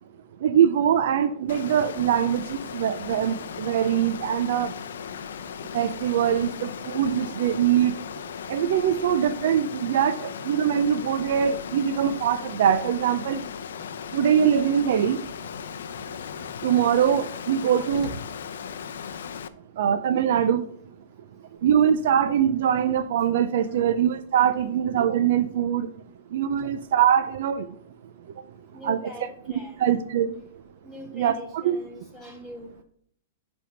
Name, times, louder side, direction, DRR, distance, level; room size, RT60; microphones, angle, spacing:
voice 1, 0.4-4.7 5.7-7.9 8.5-13.4 14.1-15.2 16.6-18.1 19.8-20.6 21.6-25.9 26.3-27.7 28.8-29.0 29.8-30.3 31.1-31.3 31.6-31.7, right 9 dB, 60° right, 0.5 m, -22 dB
Water, 1.5-19.5, left 8 dB, 80° left, 0.5 m, -37 dB
voice 2, 23.5-24.0 28.7-30.4 30.8-32.8, equal, ahead, 1.9 m, -43 dB
10.0 x 3.5 x 5.7 m
hypercardioid pair, 165°, 0 cm